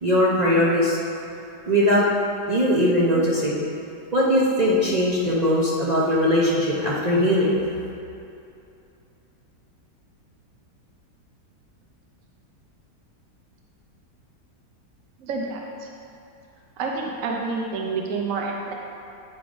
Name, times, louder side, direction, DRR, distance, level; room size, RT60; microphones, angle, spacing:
voice 1, 0.0-1.0 1.7-2.1 2.5-3.6 4.1-7.5, equal, 45° right, -6 dB, 0.5 m, -20 dB
voice 2, 15.2-15.9 16.8-18.7, right 4 dB, 60° right, -1 dB, 0.9 m, -28 dB
8.7 x 3.8 x 4.9 m, 2.7 s
omnidirectional pair, 1.8 m